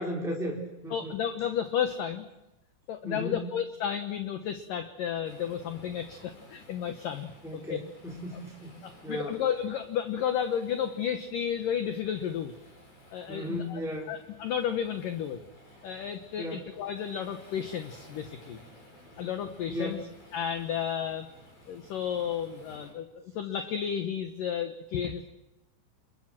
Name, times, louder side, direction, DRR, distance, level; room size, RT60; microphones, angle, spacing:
voice 1, 0.0-1.1 3.0-3.5 7.4-8.7 9.0-9.4 13.3-14.1 16.4-16.6 19.7-20.0, equal, ahead, -1 dB, 2.9 m, -35 dB
voice 2, 0.9-2.3 2.9-7.8 8.8-12.5 13.1-13.8 14.1-15.4 15.8-18.6 19.2-20.0 20.3-21.3 21.7-25.3, left 8 dB, 65° left, 9 dB, 2.3 m, -32 dB
Waves surf, 5.2-22.9, left 1 dB, 40° left, 8.4 m, -55 dB
27.0 x 23.0 x 7.6 m, 0.97 s
omnidirectional pair, 5.1 m